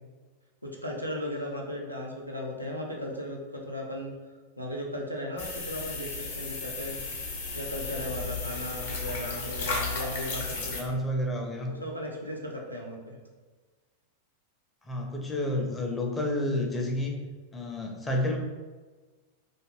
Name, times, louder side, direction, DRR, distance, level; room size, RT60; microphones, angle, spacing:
voice 1, 0.6-4.1 4.6-7.0 7.5-11.1 11.6-13.2, left 1 dB, 90° right, -1 dB, 0.4 m, -36 dB
sound 1, 5.4-10.8, left 4 dB, 55° left, 0.6 m, -34 dB
voice 2, 10.8-11.7 14.8-17.1 17.5-18.4, left 1 dB, 15° left, 0 dB, 0.5 m, -30 dB
2.4 x 2.1 x 3.2 m, 1.3 s
figure-of-eight pair, 90°, 0 cm